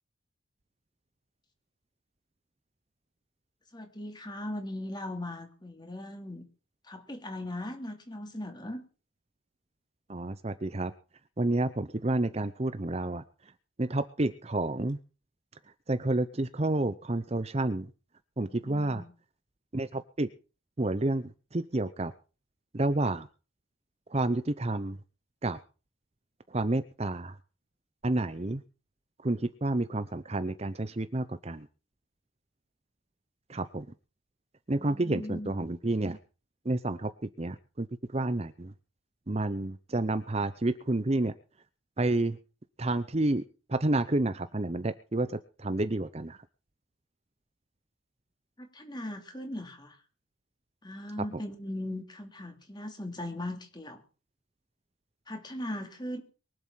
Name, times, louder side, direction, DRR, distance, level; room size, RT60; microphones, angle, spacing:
voice 1, 3.7-6.4 6.8-8.8 18.5-19.1 34.7-35.7 48.6-50.0 50.8-54.0 55.3-56.2, left 1 dB, 20° left, 5 dB, 2.9 m, -39 dB
voice 2, 10.1-10.9 11.4-13.2 13.8-15.0 15.9-17.9 18.4-19.0 19.7-20.3 20.8-22.1 22.7-23.3 24.1-25.0 25.4-25.6 26.5-27.4 28.0-28.6 29.2-31.7 33.5-33.9 34.7-36.2 36.6-37.9 38.1-38.7 39.3-41.3 42.0-42.4 42.8-43.4 43.7-46.4, right 2 dB, 30° right, 12 dB, 0.7 m, -30 dB
23.0 x 8.0 x 5.7 m, 0.35 s
head